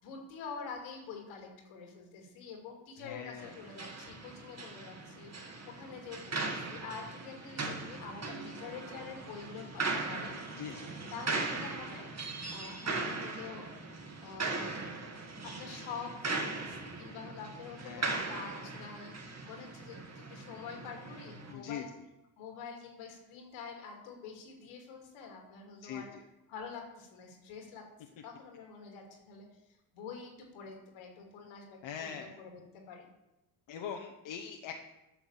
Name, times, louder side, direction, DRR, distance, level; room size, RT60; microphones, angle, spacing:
voice 1, 0.0-10.4 11.1-12.1 12.5-13.7 14.2-14.7 15.4-21.9 22.4-26.1 26.5-27.9 28.2-29.5 29.9-33.1, left 5 dB, 80° left, 2 dB, 2.6 m, -46 dB
voice 2, 3.0-3.6 10.6-10.9 17.8-18.2 21.5-21.9 25.8-26.2 31.8-32.4 33.7-34.9, left 7 dB, 65° left, 2 dB, 1.1 m, -42 dB
sound 1, 3.4-21.5, right 3 dB, 30° right, 1.9 m, -39 dB
9.1 x 5.9 x 7.2 m, 0.95 s
supercardioid pair, 65°, 49 cm